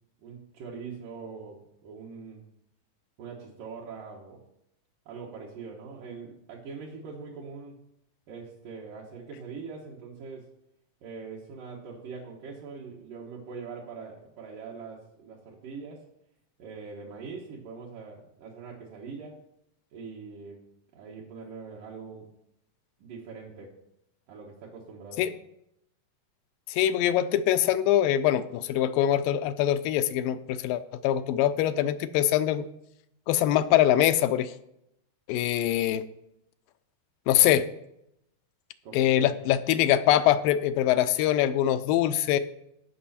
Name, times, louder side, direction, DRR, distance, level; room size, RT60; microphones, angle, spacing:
voice 1, 0.2-2.4 3.2-4.4 5.1-7.8 8.3-10.5 11.0-16.1 16.6-19.4 19.9-20.6 20.9-22.3 23.0-23.7 24.3-25.3 38.8-39.5, right 5 dB, 70° right, -4 dB, 3.0 m, -42 dB
voice 2, 26.7-32.7 33.3-34.5 35.3-36.1 37.3-37.7 38.9-42.4, left 12 dB, 85° left, 11 dB, 2.3 m, -23 dB
17.5 x 6.2 x 4.3 m, 0.79 s
omnidirectional pair, 4.0 m